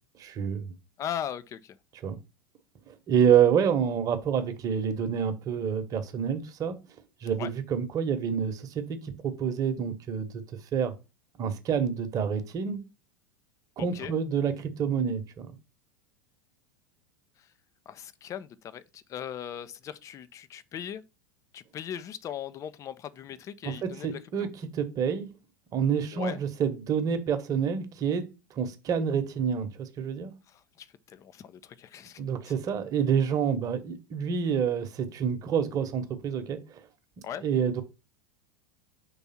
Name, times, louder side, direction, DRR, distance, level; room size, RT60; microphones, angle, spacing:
voice 1, 0.2-0.7 2.0-2.2 3.1-6.8 7.2-10.2 10.7-10.9 11.4-12.8 13.8-15.5 23.6-23.7 24.0-25.3 25.7-28.2 28.6-30.3 32.2-36.6 37.4-37.8, right 7 dB, 35° right, 1.1 m, -27 dB
voice 2, 1.0-1.8 7.4-7.5 13.8-14.1 17.4-17.5 17.9-21.0 21.5-24.5 26.1-26.4 30.5-32.5 37.2-37.4, left 9 dB, 30° left, 0.6 m, -39 dB
5.5 x 3.5 x 5.8 m
figure-of-eight pair, 85°, 11 cm